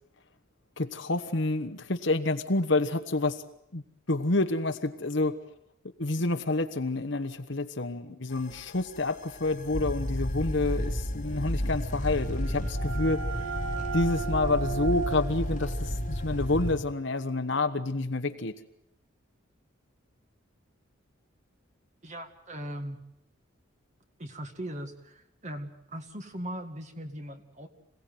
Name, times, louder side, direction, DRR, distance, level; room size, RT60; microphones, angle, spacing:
voice 1, 0.8-3.4 3.7-5.4 6.0-13.2 13.9-18.6, left 2 dB, 60° left, 8 dB, 1.2 m, -28 dB
sound 1, 8.3-16.8, equal, 35° left, 1.7 m, -32 dB
sound 2, 12.1-17.6, right 5 dB, 80° right, 5.2 m, -38 dB
voice 2, 22.0-23.0 24.2-27.7, right 1 dB, 35° right, 7 dB, 2.0 m, -39 dB
26.5 x 17.5 x 9.3 m, 0.81 s
head